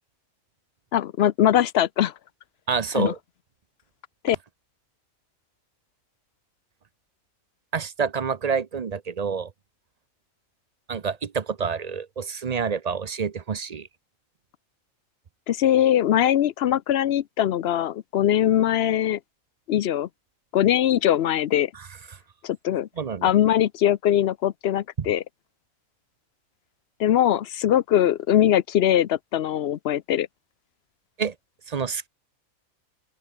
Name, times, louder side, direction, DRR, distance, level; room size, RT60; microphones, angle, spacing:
voice 1, 0.9-2.1 2.9-3.1 4.2-4.4 15.5-19.2 19.7-20.1 20.5-21.7 22.4-22.9 23.2-25.2 27.0-30.3, left 11 dB, 60° left, 0.7 m, -21 dB
voice 2, 2.7-3.2 7.7-9.5 10.9-13.9 23.0-23.3 31.2-31.3 31.7-32.1, right 6 dB, 40° right, 0.6 m, -28 dB
open air
omnidirectional pair, 1.4 m